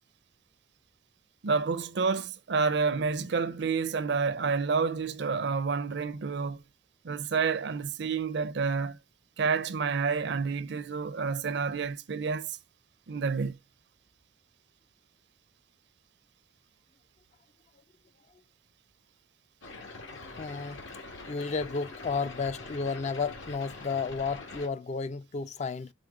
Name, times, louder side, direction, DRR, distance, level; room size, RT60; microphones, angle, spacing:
voice 1, 1.4-6.6 7.0-9.0 9.4-12.6 13.1-13.6, right 5 dB, 60° right, 0.5 m, -29 dB
sound 1, 19.6-24.7, left 3 dB, 80° left, 1.8 m, -44 dB
voice 2, 20.4-20.8 21.3-25.9, left 4 dB, 35° left, 0.3 m, -32 dB
4.9 x 4.2 x 4.6 m
head